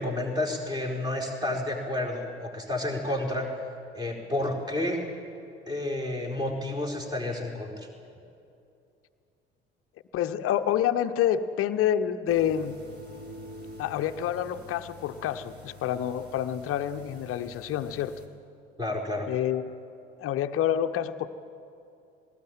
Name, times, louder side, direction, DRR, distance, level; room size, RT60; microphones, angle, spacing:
voice 1, 0.0-3.6 3.9-5.0 5.7-7.9 18.8-19.3, left 1 dB, 15° right, 0 dB, 4.6 m, -30 dB
voice 2, 10.1-12.8 13.8-18.2 19.3-19.6 20.2-21.3, left 10 dB, 45° left, 9 dB, 1.0 m, -28 dB
sound 1, 12.2-18.3, equal, 30° right, 4.1 m, -46 dB
19.5 x 19.0 x 9.0 m, 2.6 s
figure-of-eight pair, 55°, 32 cm